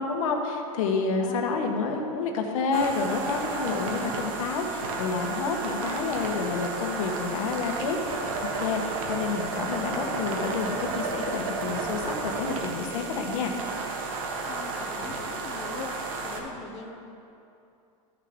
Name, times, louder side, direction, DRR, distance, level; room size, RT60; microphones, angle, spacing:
voice 1, 0.0-13.5, left 4 dB, 70° left, 3 dB, 1.3 m, -29 dB
sound 1, 2.7-16.4, right 3 dB, 75° right, 1.5 m, -32 dB
voice 2, 14.4-17.0, left 4 dB, 35° left, 2 dB, 0.9 m, -41 dB
13.5 x 6.0 x 3.7 m, 2.7 s
supercardioid pair, 130°, 18 cm